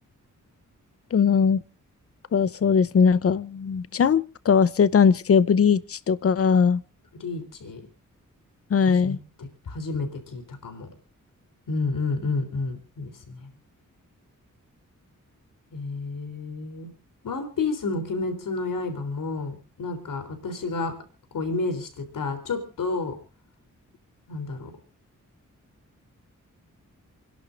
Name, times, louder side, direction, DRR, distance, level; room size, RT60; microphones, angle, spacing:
voice 1, 1.1-1.6 2.3-6.8 8.7-9.2, left 6 dB, 45° left, 0.7 m, -20 dB
voice 2, 7.2-7.8 8.9-10.9 11.7-13.5 15.7-16.9 17.2-21.0 21.3-23.2 24.3-24.7, left 3 dB, 85° left, 3.5 m, -30 dB
29.5 x 11.0 x 2.6 m
wide cardioid pair, 170°, 32 cm